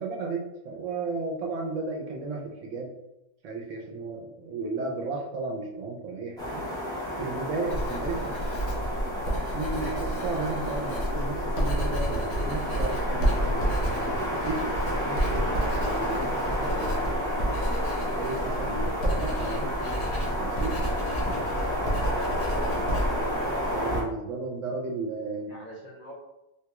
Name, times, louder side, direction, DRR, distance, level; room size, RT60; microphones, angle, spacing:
voice 1, 0.0-2.9 3.4-6.7 7.1-8.1 9.5-15.5 15.8-17.2 18.0-19.7 20.4-20.8 23.7-25.5, right 3 dB, 65° right, -2 dB, 0.9 m, -34 dB
sound 1, 6.4-24.0, equal, 5° left, 0.7 m, -31 dB
Writing, 7.7-23.8, right 1 dB, 80° left, 1.3 m, -30 dB
voice 2, 7.9-8.5 18.6-18.9 21.6-21.7 21.9-22.2 25.4-26.1, equal, 50° left, -4 dB, 0.7 m, -45 dB
3.5 x 2.2 x 2.9 m, 0.92 s
omnidirectional pair, 1.5 m